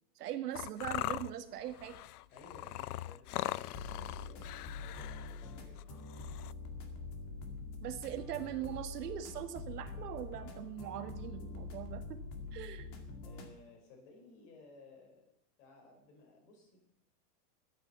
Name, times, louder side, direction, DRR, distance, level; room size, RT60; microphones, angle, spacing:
voice 1, 0.2-2.0 7.8-12.2 12.5-12.9, right 11 dB, 80° right, 7 dB, 1.7 m, -41 dB
sound 1, 0.5-6.5, left 16 dB, 75° left, 0.6 m, -41 dB
voice 2, 2.3-5.9 13.2-15.3 15.6-16.8, left 3 dB, 50° left, 2 dB, 5.4 m, -58 dB
sound 2, 3.7-13.5, left 3 dB, 35° left, 2.1 m, -45 dB
12.0 x 9.0 x 7.2 m, 0.78 s
supercardioid pair, 160°, 46 cm